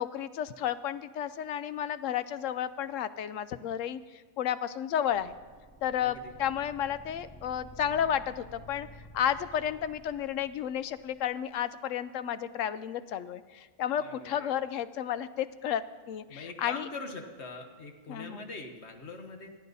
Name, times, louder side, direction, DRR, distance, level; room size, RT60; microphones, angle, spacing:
voice 1, 0.0-5.4 5.8-8.9 9.1-16.9 18.1-18.4, left 9 dB, 70° left, 14 dB, 0.9 m, -32 dB
sound 1, 5.1-11.3, equal, 5° left, 1.4 m, -52 dB
voice 2, 6.0-6.3 14.0-14.5 16.3-19.5, left 3 dB, 50° left, 4 dB, 1.4 m, -43 dB
25.5 x 9.3 x 4.1 m, 1.4 s
omnidirectional pair, 1.5 m